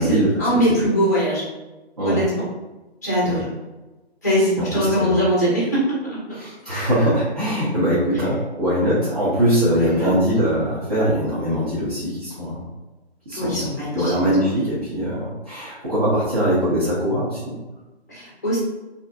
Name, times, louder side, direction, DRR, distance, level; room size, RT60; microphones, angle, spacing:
voice 1, 0.0-1.4 2.0-2.4 3.0-3.5 4.2-6.2 9.8-10.1 13.3-14.1 18.1-18.6, equal, 15° left, -7 dB, 0.6 m, -21 dB
voice 2, 4.6-5.2 6.3-12.6 13.3-17.6, equal, 35° right, -10 dB, 0.7 m, -22 dB
2.4 x 2.2 x 2.5 m, 1.1 s
figure-of-eight pair, 150°, 33 cm